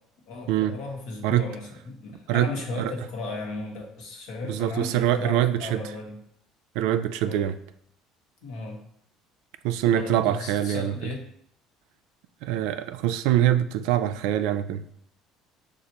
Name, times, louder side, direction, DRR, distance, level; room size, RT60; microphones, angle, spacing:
voice 1, 0.3-6.2 7.2-7.5 8.4-8.8 9.9-11.3, left 3 dB, 75° left, 1.1 m, -35 dB
voice 2, 2.3-2.9 4.5-5.8 6.8-7.5 9.6-10.9 12.4-14.8, right 12 dB, 80° right, 0.3 m, -24 dB
6.4 x 2.4 x 2.9 m
cardioid pair, 125°, 0 cm